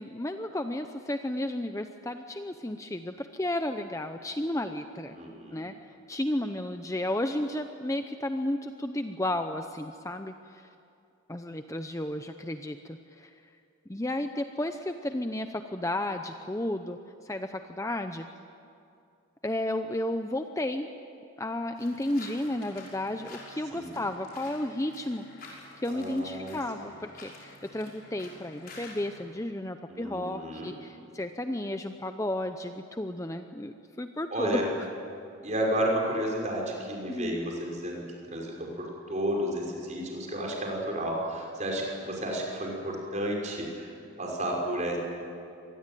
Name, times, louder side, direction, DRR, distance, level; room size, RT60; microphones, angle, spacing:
voice 1, 0.0-5.2 5.5-5.7 6.1-10.7 11.3-13.3 13.9-18.3 19.4-20.9 21.4-34.6 37.1-37.4, left 1 dB, 15° left, 7 dB, 0.7 m, -33 dB
voice 2, 5.1-5.6 23.7-24.0 25.9-26.6 29.9-30.7 34.3-34.7 35.4-43.9 44.2-45.0, right 1 dB, 35° right, -1 dB, 5.9 m, -32 dB
sound 1, 21.8-29.2, left 2 dB, 45° left, 5.8 m, -49 dB
26.0 x 20.5 x 9.2 m, 2.6 s
head